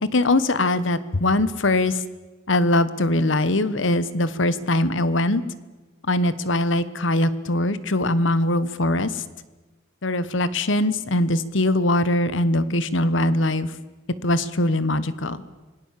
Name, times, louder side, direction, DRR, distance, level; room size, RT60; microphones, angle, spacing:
voice 1, 0.1-2.0 2.5-5.4 6.1-9.2 10.0-13.7 14.2-15.4, left 1 dB, 70° left, 15 dB, 1.2 m, -22 dB
26.0 x 19.0 x 7.6 m, 1.2 s
head